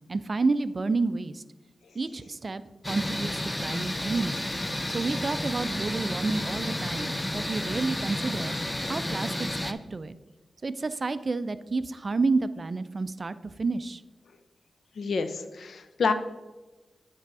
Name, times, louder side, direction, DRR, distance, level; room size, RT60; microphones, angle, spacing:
voice 1, 0.1-1.4 1.9-2.6 2.9-4.4 4.9-8.5 8.9-10.1 10.6-14.0, right 3 dB, 45° right, 14 dB, 0.4 m, -30 dB
sound 1, 2.8-9.7, left 1 dB, 15° left, 0.5 m, -31 dB
voice 2, 15.0-16.1, left 4 dB, 80° left, 10 dB, 0.5 m, -28 dB
9.3 x 3.4 x 4.7 m, 1.1 s
cardioid pair, 65°, 0 cm